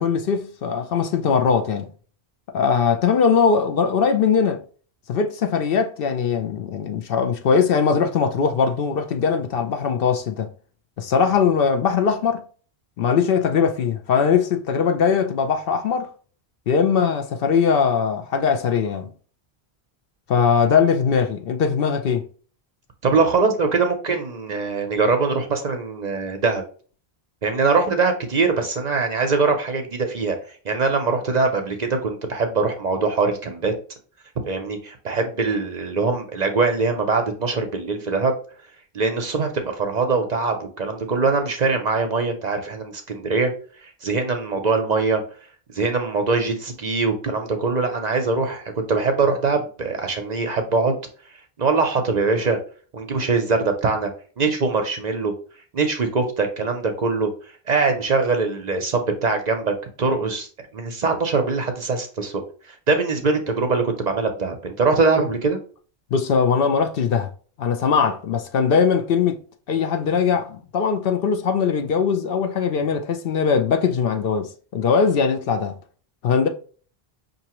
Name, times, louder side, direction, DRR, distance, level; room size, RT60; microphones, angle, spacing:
voice 1, 0.0-1.9 2.5-4.6 5.1-10.5 11.0-12.4 13.0-16.1 16.7-19.1 20.3-22.3 66.1-67.3 67.6-69.4 69.7-75.8 76.2-76.5, left 6 dB, 65° left, 0.7 m, -20 dB
voice 2, 23.0-26.6 27.4-30.4 30.6-33.7 34.4-38.3 38.9-43.5 43.8-45.2 45.7-50.9 51.6-52.6 52.9-54.1 54.4-55.3 55.7-57.3 57.7-60.5 60.7-62.4 62.9-65.6, right 4 dB, 50° right, 0.6 m, -22 dB
5.6 x 2.6 x 2.9 m
omnidirectional pair, 1.1 m